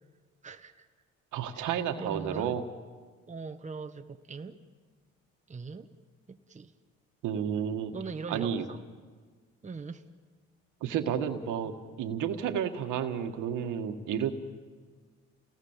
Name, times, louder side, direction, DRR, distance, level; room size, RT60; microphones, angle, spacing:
voice 1, 0.4-0.8 1.5-2.6 3.3-4.6 5.5-5.9 6.3-6.7 7.9-8.8 9.6-10.0, right 4 dB, 25° right, 6 dB, 1.2 m, -41 dB
voice 2, 1.3-2.6 7.2-7.9 8.3-8.6 10.8-14.3, right 8 dB, 85° right, 6 dB, 1.8 m, -31 dB
29.5 x 18.5 x 7.3 m, 1.5 s
cardioid pair, 90°, 30 cm